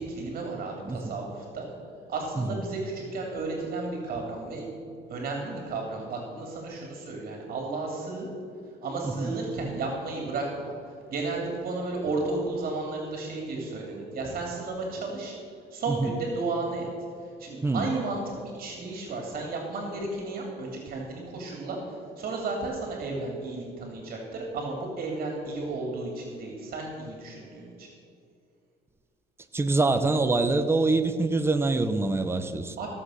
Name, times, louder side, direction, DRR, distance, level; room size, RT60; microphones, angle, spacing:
voice 1, 0.0-1.7 2.1-4.7 5.1-8.3 8.8-10.7 11.1-15.4 15.7-16.9 17.4-21.8 22.2-27.9 32.8-32.9, right 3 dB, 55° right, 0 dB, 3.0 m, -33 dB
voice 2, 29.5-32.8, right 3 dB, 15° right, 8 dB, 0.8 m, -25 dB
16.0 x 7.5 x 6.5 m, 2.4 s
cardioid pair, 110°, 17 cm